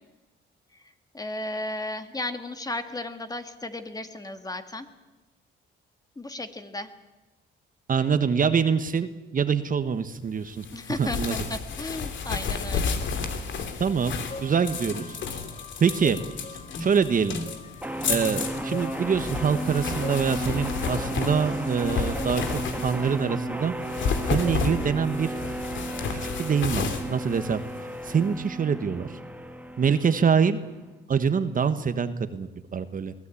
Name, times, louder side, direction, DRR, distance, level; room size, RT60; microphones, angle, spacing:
voice 1, 1.1-4.9 6.2-6.9 10.7-13.0, left 2 dB, 20° left, 8 dB, 2.0 m, -34 dB
voice 2, 7.9-10.6 11.0-11.3 13.8-14.1 14.4-15.2 15.8-16.2 16.8-17.4 18.1-23.7 24.2-25.3 26.4-27.6 28.0-29.2 29.8-30.6 31.1-33.1, right 6 dB, 45° right, 10 dB, 1.4 m, -25 dB
sound 1, 10.6-23.2 23.8-28.1, left 5 dB, 70° left, 2.8 m, -32 dB
sound 2, 14.2-25.3, left 5 dB, 35° left, 1.5 m, -45 dB
sound 3, 17.8-30.8, right 1 dB, 10° right, 1.5 m, -34 dB
23.0 x 17.5 x 8.6 m, 1.1 s
cardioid pair, 90°, 20 cm